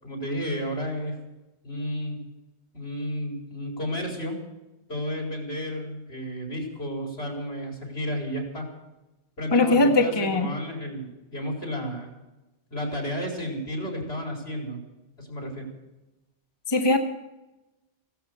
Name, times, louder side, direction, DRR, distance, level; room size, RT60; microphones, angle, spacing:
voice 1, 0.0-1.2 1.6-2.2 2.7-4.4 4.9-8.7 9.4-12.1 12.7-14.8 15.2-15.7, equal, 70° left, 0 dB, 4.9 m, -32 dB
voice 2, 9.5-10.5 16.7-17.0, left 2 dB, 25° left, 4 dB, 1.1 m, -20 dB
16.5 x 12.5 x 6.7 m, 1.0 s
omnidirectional pair, 1.1 m